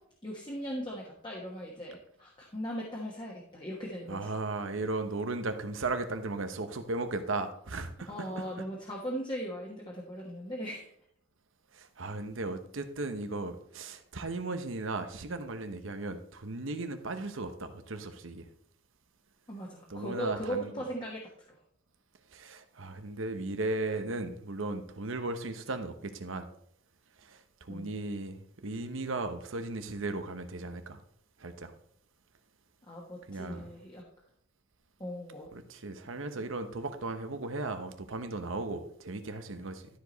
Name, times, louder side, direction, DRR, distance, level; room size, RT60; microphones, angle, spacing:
voice 1, 0.2-4.2 8.1-10.9 19.5-21.2 27.7-27.9 32.9-34.0 35.0-35.5, equal, 25° left, 1.3 m, -38 dB
voice 2, 4.1-8.6 11.7-18.5 19.9-20.8 22.3-26.5 27.2-31.0 31.4-31.7 33.3-33.7 35.5-39.8, right 2 dB, 80° right, 1.0 m, -36 dB
12.5 x 5.0 x 4.0 m
head